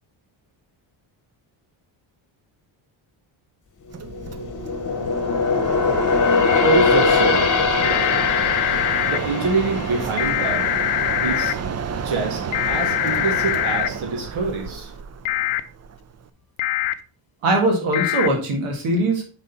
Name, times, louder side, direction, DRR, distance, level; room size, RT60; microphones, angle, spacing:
sound 1, 3.9-11.4 11.8-12.0 12.6-13.3 13.6-13.7, left 5 dB, 40° left, 1.1 m, -22 dB
Mechanisms, 3.9-16.3, right 7 dB, 35° right, 0.5 m, -30 dB
voice 1, 6.6-7.5 7.8-8.1 9.0-10.6 11.2-11.6 11.9-14.9, right 3 dB, 70° right, 1 dB, 1.7 m, -25 dB
sound 2, 7.8-9.2 10.2-11.5 12.5-13.9 15.2-15.6 16.6-16.9 17.9-18.3, left 15 dB, 70° left, 0.7 m, -23 dB
voice 2, 17.4-19.2, right 1 dB, 90° right, 2 dB, 1.9 m, -21 dB
5.5 x 4.0 x 5.2 m, 0.38 s
cardioid pair, 85°, 49 cm